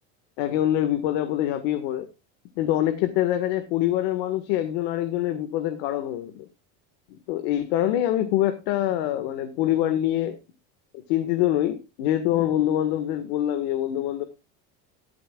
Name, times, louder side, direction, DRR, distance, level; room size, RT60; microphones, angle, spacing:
voice 1, 0.4-2.1 2.5-6.4 7.1-10.4 10.9-14.2, left 12 dB, 70° left, 8 dB, 1.8 m, -25 dB
14.5 x 12.5 x 2.4 m, 0.28 s
cardioid pair, 170°, 35 cm